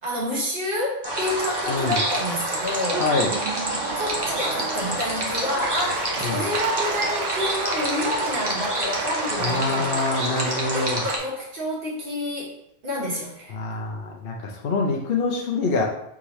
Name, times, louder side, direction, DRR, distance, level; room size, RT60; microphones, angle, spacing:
voice 1, 0.0-3.1 3.9-9.9 10.7-13.5, left 1 dB, 60° right, -4 dB, 1.4 m, -29 dB
sound 1, 1.0-11.2, right 1 dB, 25° right, 0.8 m, -28 dB
voice 2, 1.7-2.0 3.0-3.3 6.2-6.5 9.4-11.0 13.5-15.8, left 3 dB, 65° left, -1 dB, 0.8 m, -25 dB
Laughter / Applause, 2.8-11.2, right 5 dB, 85° right, 0.8 m, -33 dB
3.6 x 3.1 x 4.0 m, 0.77 s
omnidirectional pair, 1.0 m